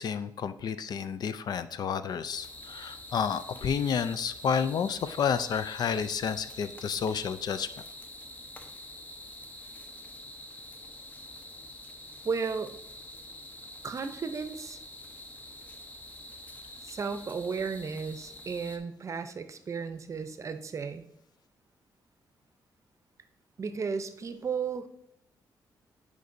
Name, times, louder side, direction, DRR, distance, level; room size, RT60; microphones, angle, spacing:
voice 1, 0.0-7.7, left 7 dB, 60° left, 13 dB, 0.4 m, -30 dB
sound 1, 2.3-18.8, left 1 dB, 20° left, 0.9 m, -46 dB
voice 2, 12.2-12.7 13.8-14.8 16.8-21.1 23.6-24.9, right 5 dB, 40° right, 9 dB, 0.6 m, -34 dB
9.4 x 5.2 x 2.6 m, 0.78 s
cardioid pair, 95°, 8 cm